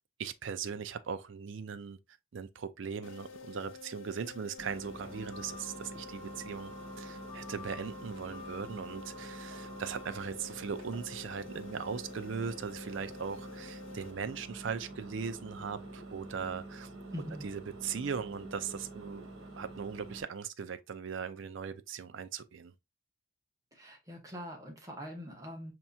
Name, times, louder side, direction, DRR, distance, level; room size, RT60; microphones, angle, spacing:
voice 1, 0.2-2.0 2.3-16.9 17.4-19.3 19.6-22.7, right 6 dB, 65° right, 0.4 m, -39 dB
sound 1, 3.0-14.7, left 5 dB, 70° left, 0.6 m, -50 dB
Engine, 4.6-20.2, right 2 dB, 80° right, 1.6 m, -47 dB
sound 2, 5.1-10.2, left 2 dB, 30° left, 0.8 m, -51 dB
voice 2, 17.1-17.4 23.7-25.7, equal, 15° right, 1.0 m, -43 dB
5.4 x 2.9 x 2.3 m
head